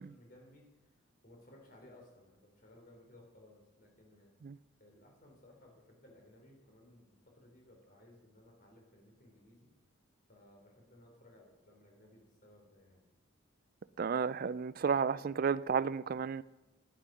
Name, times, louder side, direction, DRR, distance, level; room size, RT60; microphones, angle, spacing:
voice 1, 0.0-4.3 4.8-9.7 10.3-13.0, left 1 dB, 40° left, 3.6 m, -60 dB
voice 2, 14.0-16.4, right 6 dB, 45° right, 0.3 m, -32 dB
10.5 x 10.5 x 6.2 m
head